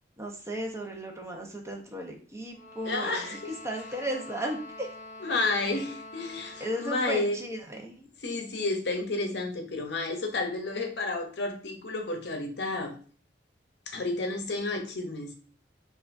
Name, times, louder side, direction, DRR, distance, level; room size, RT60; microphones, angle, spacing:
voice 1, 0.2-3.3 3.6-4.9 5.7-5.8 6.6-8.1, right 1 dB, 15° right, 0.8 m, -35 dB
sound 1, 2.5-7.2, left 2 dB, 40° left, 1.4 m, -46 dB
voice 2, 2.8-3.5 5.2-7.4 8.2-13.0 13.9-15.3, left 2 dB, 65° left, 0.7 m, -31 dB
5.5 x 2.5 x 2.6 m
head